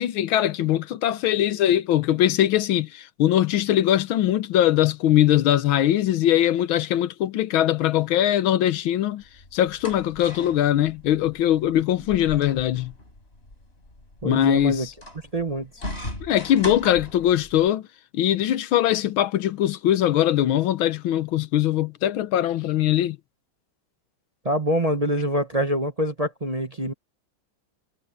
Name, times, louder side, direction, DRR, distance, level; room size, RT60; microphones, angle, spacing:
voice 1, 0.0-9.2 9.5-12.9 14.2-14.9 16.2-17.9 18.1-23.2, left 12 dB, 80° left, 1.6 m, -21 dB
sound 1, 9.2-17.7, left 1 dB, 30° left, 5.5 m, -39 dB
voice 2, 14.2-14.9 15.3-15.7 24.4-26.9, equal, 25° right, 0.9 m, -25 dB
omnidirectional pair, 2.2 m